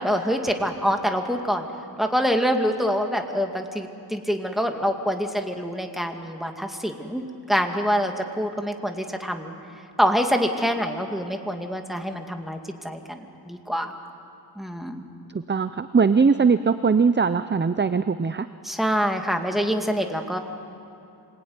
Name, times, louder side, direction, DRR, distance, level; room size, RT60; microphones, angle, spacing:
voice 1, 0.0-1.7 2.0-9.5 10.0-12.6 12.8-13.9 14.6-15.0 18.6-20.4, equal, ahead, 4 dB, 2.2 m, -25 dB
voice 2, 15.5-18.5, right 5 dB, 25° right, 12 dB, 0.6 m, -20 dB
26.5 x 20.0 x 9.6 m, 2.7 s
wide cardioid pair, 75°, 44 cm